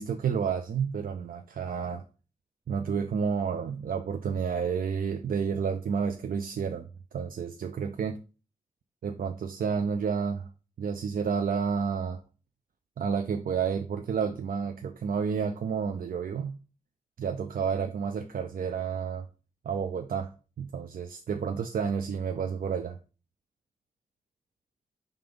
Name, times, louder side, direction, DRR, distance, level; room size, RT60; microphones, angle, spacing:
voice 1, 0.0-2.0 2.7-6.9 7.1-8.2 9.0-10.5 10.8-12.2 13.0-16.6 17.2-19.3 19.6-20.3 20.6-23.0, right 6 dB, 85° right, 0.5 m, -30 dB
5.3 x 3.4 x 5.1 m
wide cardioid pair, 115°, 14 cm